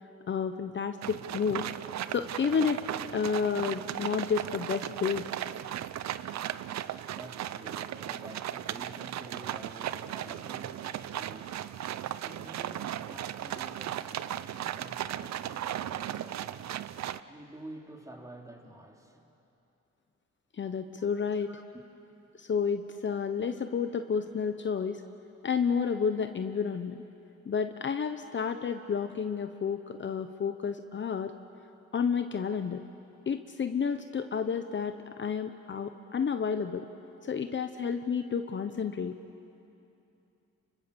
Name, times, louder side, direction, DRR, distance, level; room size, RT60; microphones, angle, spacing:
voice 1, 0.3-1.7 2.1-2.8 3.1-5.3 20.6-21.5 22.4-25.0 25.4-27.0 27.5-31.3 31.9-32.8 33.3-36.9 37.2-39.2, left 6 dB, 40° left, 8 dB, 0.9 m, -30 dB
sound 1, 1.0-17.2, right 11 dB, 65° right, 0.7 m, -36 dB
voice 2, 6.5-19.3 21.4-21.8, right 1 dB, 10° right, 1 dB, 3.2 m, -50 dB
29.5 x 24.0 x 7.0 m, 2.8 s
cardioid pair, 90°, 30 cm